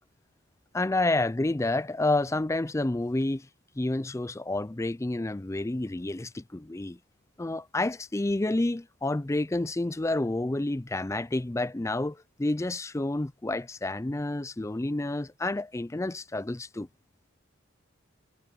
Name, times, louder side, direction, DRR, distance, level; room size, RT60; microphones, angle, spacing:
voice 1, 0.7-3.5 3.8-7.0 7.4-16.9, left 2 dB, 15° left, 0.4 m, -29 dB
head